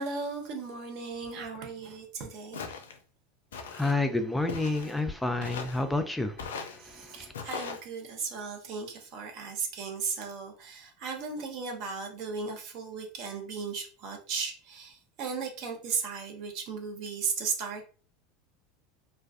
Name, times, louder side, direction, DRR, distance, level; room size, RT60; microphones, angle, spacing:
voice 1, 0.0-2.6 6.8-17.9, right 5 dB, 55° right, 3 dB, 0.7 m, -36 dB
Walk footsteps, 2.5-3.0 3.5-4.0 4.5-5.0 5.4-5.8 6.4-6.8 7.3-7.8, left 5 dB, 80° left, 0.4 m, -39 dB
voice 2, 3.5-7.3, left 2 dB, 5° left, 7 dB, 0.3 m, -30 dB
2.4 x 2.2 x 2.3 m, 0.39 s
hypercardioid pair, 80°, 0 cm